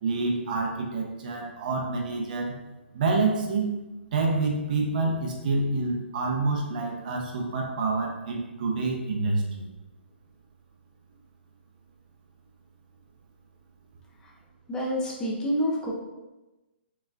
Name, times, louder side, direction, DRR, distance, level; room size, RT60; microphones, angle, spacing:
voice 1, 0.0-2.6 2.9-3.7 4.1-9.6, right 3 dB, 45° right, 1 dB, 0.8 m, -27 dB
voice 2, 14.7-15.9, equal, 10° left, -3 dB, 0.7 m, -28 dB
4.3 x 3.3 x 2.4 m, 1.1 s
figure-of-eight pair, 125°, 6 cm